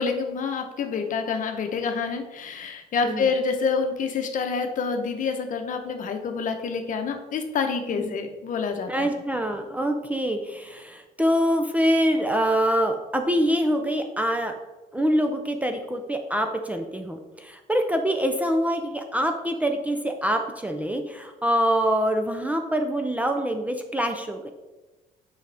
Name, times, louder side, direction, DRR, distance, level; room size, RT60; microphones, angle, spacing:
voice 1, 0.0-9.1, left 5 dB, 50° left, 5 dB, 0.9 m, -27 dB
voice 2, 8.9-14.5 14.9-24.5, equal, 10° right, 5 dB, 0.5 m, -25 dB
6.5 x 5.0 x 3.4 m, 1.1 s
cardioid pair, 110°, 17 cm